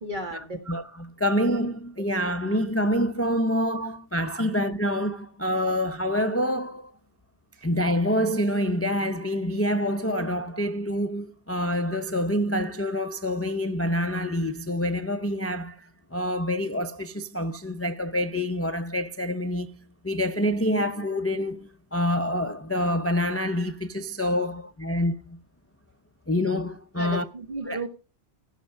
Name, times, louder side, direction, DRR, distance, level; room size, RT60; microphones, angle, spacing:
voice 1, 0.0-0.6 2.0-2.1 3.8-3.9 7.5-7.7 26.9-27.9, right 1 dB, 50° right, 2.0 m, -34 dB
voice 2, 0.7-6.9 7.6-25.4 26.3-27.2 27.7-27.8, equal, 20° left, 0.5 m, -27 dB
16.0 x 6.3 x 5.4 m
omnidirectional pair, 1.1 m